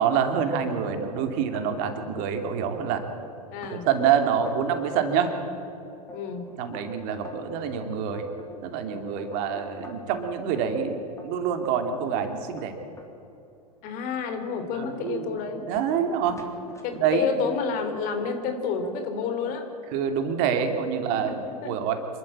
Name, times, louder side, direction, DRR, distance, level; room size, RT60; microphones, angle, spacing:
voice 1, 0.0-3.0 3.7-5.3 6.6-8.3 8.6-12.7 14.8-15.4 15.7-16.4 17.0-17.3 19.9-21.4 21.6-22.0, right 7 dB, 45° right, 6 dB, 2.5 m, -26 dB
sound 1, 1.5-2.5 2.7-3.3 3.6-3.7 4.2-5.4 5.8-10.2 10.5-13.1 13.7-13.9 14.3-17.4 18.2-18.6 18.8-19.6, left 3 dB, 15° left, 3.2 m, -45 dB
voice 2, 3.5-3.9 6.1-6.5 13.8-15.6 16.8-19.7 21.1-21.7, left 5 dB, 45° left, 6 dB, 3.3 m, -30 dB
27.0 x 12.5 x 8.6 m, 2.8 s
figure-of-eight pair, 95°, 20 cm